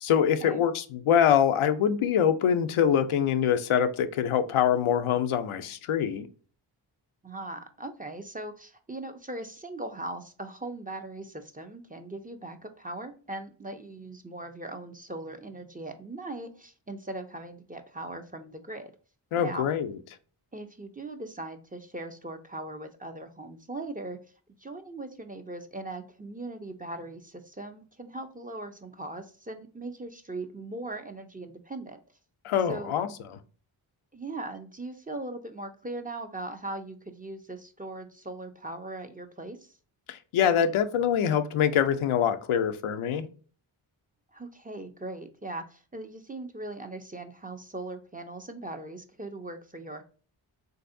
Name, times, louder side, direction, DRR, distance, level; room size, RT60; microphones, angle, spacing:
voice 1, 0.0-6.3 19.3-20.0 32.4-33.4 40.1-43.3, left 8 dB, 80° left, 0.5 m, -24 dB
voice 2, 7.2-18.9 19.4-19.7 20.5-24.2 24.6-32.0 32.7-32.9 34.1-39.7 44.3-50.0, right 2 dB, 20° right, 0.5 m, -39 dB
3.3 x 2.6 x 2.5 m
cardioid pair, 45°, 49 cm